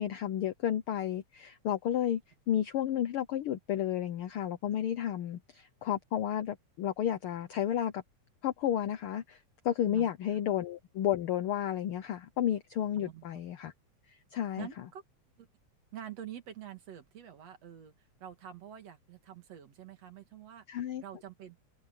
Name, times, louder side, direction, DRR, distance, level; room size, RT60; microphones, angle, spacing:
voice 1, 0.0-2.2 2.5-8.0 8.4-9.4 9.6-13.7 14.3-14.7 20.7-21.0, left 10 dB, 85° left, 1.2 m, -32 dB
voice 2, 9.9-10.4 13.0-13.3 14.5-15.0 15.4-15.5 15.9-21.6, right 10 dB, 60° right, 3.0 m, -47 dB
omnidirectional pair, 3.4 m